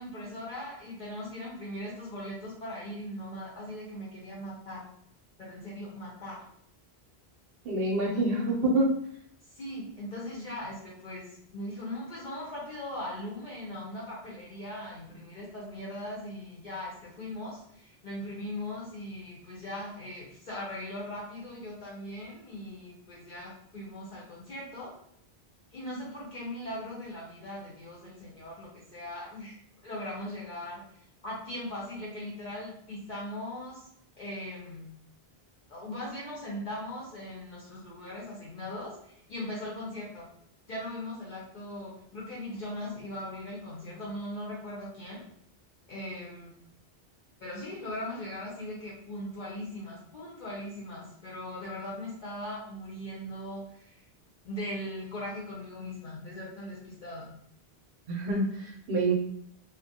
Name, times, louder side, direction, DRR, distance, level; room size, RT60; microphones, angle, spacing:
voice 1, 0.0-4.8 5.4-6.4 9.5-24.9 25.7-30.8 31.2-33.8 34.2-34.9 35.7-40.3 40.7-45.2 45.9-46.5 47.4-54.0 54.4-57.3, left 1 dB, 55° left, -6 dB, 0.7 m, -39 dB
voice 2, 7.6-8.9 58.1-59.1, right 2 dB, 75° right, -1 dB, 0.8 m, -27 dB
2.3 x 2.1 x 2.7 m, 0.68 s
omnidirectional pair, 1.0 m